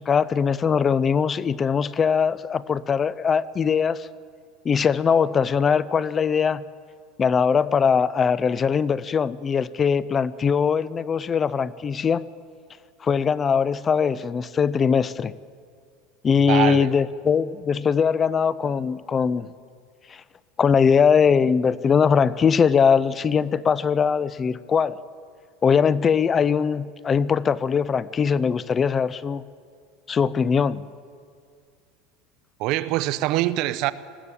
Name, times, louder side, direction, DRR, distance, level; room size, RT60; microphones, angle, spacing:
voice 1, 0.0-4.1 4.6-6.6 7.2-12.3 13.0-15.3 16.2-19.5 20.1-20.2 20.6-25.0 25.6-29.4 30.1-30.8, left 6 dB, 25° left, 0.4 m, -21 dB
voice 2, 16.4-16.9 32.6-33.9, right 16 dB, 55° right, 0.8 m, -24 dB
20.0 x 15.5 x 8.6 m
supercardioid pair, 140°, 0 cm